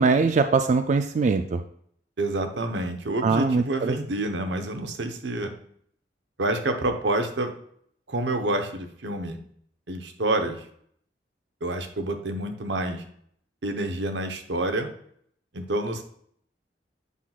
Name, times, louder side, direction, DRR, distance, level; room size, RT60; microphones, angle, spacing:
voice 1, 0.0-1.6 3.2-4.0, right 4 dB, 45° right, 8 dB, 0.4 m, -22 dB
voice 2, 2.2-5.5 6.4-7.5 8.1-9.4 9.9-10.6 11.6-13.0 13.6-14.9 15.5-16.0, right 2 dB, 90° right, 6 dB, 0.9 m, -28 dB
8.3 x 5.8 x 2.4 m, 0.64 s
head